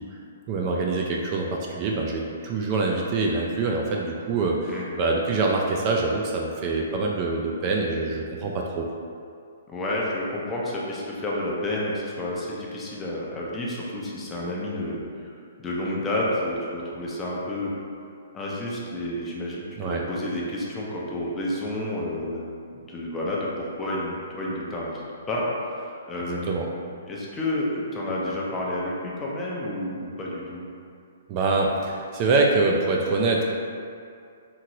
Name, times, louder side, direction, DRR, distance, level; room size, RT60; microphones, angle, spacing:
voice 1, 0.5-8.9 19.8-20.0 26.2-26.7 31.3-33.4, right 3 dB, 35° right, -1 dB, 0.3 m, -25 dB
voice 2, 4.7-5.0 9.7-15.3 15.6-17.7 18.3-25.0 25.3-26.6 27.1-30.6, left 1 dB, 15° left, -5 dB, 0.5 m, -30 dB
3.0 x 2.8 x 2.6 m, 2.4 s
hypercardioid pair, 135°, 0 cm